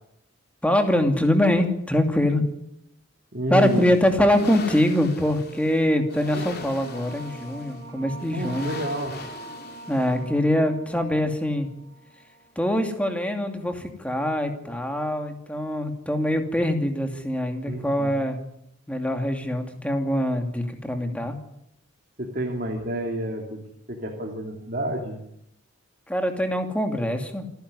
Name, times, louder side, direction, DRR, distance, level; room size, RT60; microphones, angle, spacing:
voice 1, 0.6-2.4 3.5-8.7 9.9-11.7 12.6-18.4 18.9-21.4 26.1-27.5, left 1 dB, 5° left, 5 dB, 2.5 m, -23 dB
voice 2, 3.3-3.8 6.3-6.5 8.3-9.2 17.6-18.2 22.2-23.6 23.9-25.2, right 1 dB, 45° right, 0 dB, 3.0 m, -29 dB
sound 1, 3.6-10.4, left 3 dB, 50° left, 3.3 m, -40 dB
sound 2, 5.6-12.8, right 2 dB, 90° right, 4.7 m, -44 dB
28.5 x 10.5 x 9.8 m, 0.76 s
head